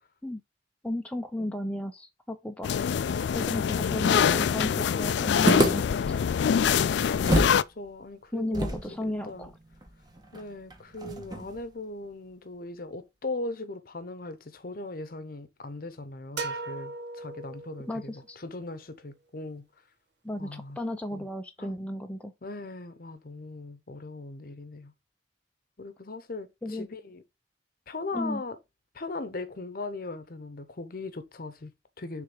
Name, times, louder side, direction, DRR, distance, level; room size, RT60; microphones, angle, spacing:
voice 1, 0.8-2.7 3.3-6.2 8.3-9.5 17.9-18.4 20.2-22.3 26.6-26.9 28.1-28.4, left 1 dB, 5° left, 0.5 m, -34 dB
sound 1, 2.6-7.6, left 7 dB, 70° left, 0.3 m, -24 dB
sound 2, 5.5-7.6 7.9-8.0 8.5-11.7, right 1 dB, 25° right, 1.2 m, -29 dB
voice 2, 7.7-9.5 10.3-19.7 20.4-20.8 21.1-21.3 21.6-21.8 22.4-24.9 25.8-27.2 27.9-28.6 28.9-32.2, left 2 dB, 50° left, 0.8 m, -39 dB
sound 3, 16.4-18.1, right 3 dB, 75° right, 1.3 m, -37 dB
6.9 x 3.4 x 4.9 m
head